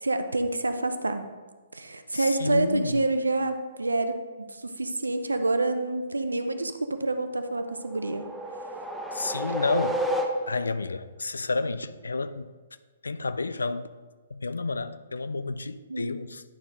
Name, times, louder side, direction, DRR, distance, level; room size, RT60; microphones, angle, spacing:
voice 1, 0.0-1.3 1.7-4.2 4.5-8.3 15.9-16.2, right 2 dB, 85° right, 8 dB, 0.6 m, -27 dB
voice 2, 2.1-3.0 9.1-10.0 10.5-12.5 13.0-13.9 14.3-16.4, left 3 dB, 75° left, 13 dB, 0.4 m, -30 dB
sound 1, 7.6-10.8, equal, ahead, 0.6 m, -31 dB
9.7 x 4.5 x 3.6 m, 1.4 s
figure-of-eight pair, 125°, 0 cm